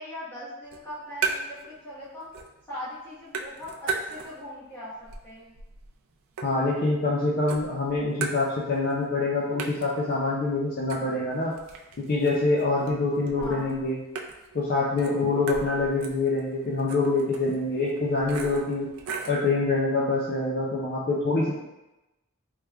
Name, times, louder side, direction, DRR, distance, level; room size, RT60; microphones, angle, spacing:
voice 1, 0.0-2.3 2.7-4.9 5.2-5.5 13.4-13.7, left 1 dB, 10° left, -11 dB, 1.1 m, -40 dB
sound 1, 0.6-1.7 2.0-2.7 3.0-4.6 5.0-7.1 7.5-8.9 9.2-9.3 9.6-19.5, right 5 dB, 65° right, 0.4 m, -37 dB
voice 2, 6.4-11.5 12.0-14.0 14.5-18.9 19.3-21.6, left 3 dB, 45° left, -4 dB, 0.4 m, -25 dB
3.3 x 3.1 x 2.3 m, 0.98 s
head